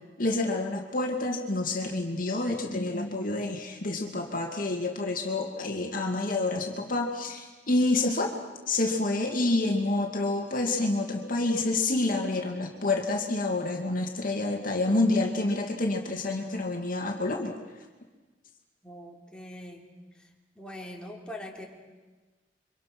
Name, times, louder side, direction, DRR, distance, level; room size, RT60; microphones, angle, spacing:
voice 1, 0.2-8.4 8.7-17.6, left 2 dB, 50° left, 2 dB, 2.4 m, -28 dB
voice 2, 18.8-19.9 20.5-21.7, left 1 dB, 5° left, -1 dB, 3.4 m, -42 dB
28.5 x 25.0 x 6.2 m, 1.3 s
head